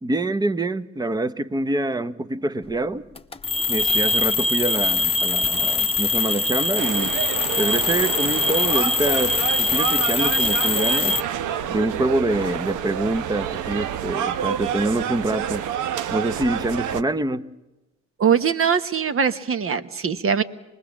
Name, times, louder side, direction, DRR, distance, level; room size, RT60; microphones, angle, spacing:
voice 1, 0.0-3.1 3.7-7.1 7.6-11.2 11.7-15.6 16.1-17.5, right 2 dB, 15° right, 14 dB, 0.8 m, -25 dB
sound 1, 3.2-11.2, left 3 dB, 20° left, 0.9 m, -22 dB
sound 2, 6.8-17.0, right 9 dB, 80° right, 0.9 m, -28 dB
voice 2, 18.2-20.4, right 7 dB, 45° right, 11 dB, 1.1 m, -21 dB
25.0 x 20.5 x 7.3 m, 1.0 s
cardioid pair, 90°, 30 cm